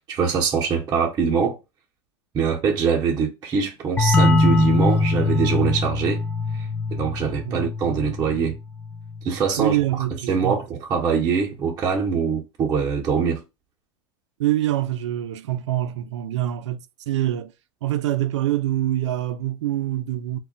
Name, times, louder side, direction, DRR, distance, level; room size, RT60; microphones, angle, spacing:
voice 1, 0.1-1.6 2.3-6.3 6.9-8.6 9.2-9.8 10.3-13.4, right 6 dB, 25° right, 0.7 m, -23 dB
sound 1, 4.0-9.4, left 3 dB, 15° left, 0.3 m, -22 dB
voice 2, 9.6-10.6 14.4-17.5 17.8-20.4, right 13 dB, 85° right, 0.4 m, -25 dB
2.2 x 2.1 x 3.7 m
hypercardioid pair, 110°, 15 cm